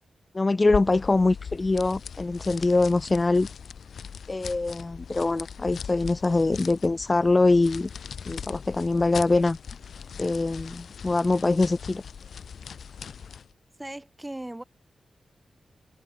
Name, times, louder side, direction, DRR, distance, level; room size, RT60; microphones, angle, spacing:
voice 1, 0.3-3.5 4.3-7.9 8.3-9.6 10.2-12.0, left 3 dB, 30° left, 1.3 m, -23 dB
sound 1, 0.6-13.5, left 7 dB, 80° left, 0.9 m, -40 dB
voice 2, 13.8-14.6, right 1 dB, 15° right, 5.0 m, -37 dB
cardioid pair, 65°, 0 cm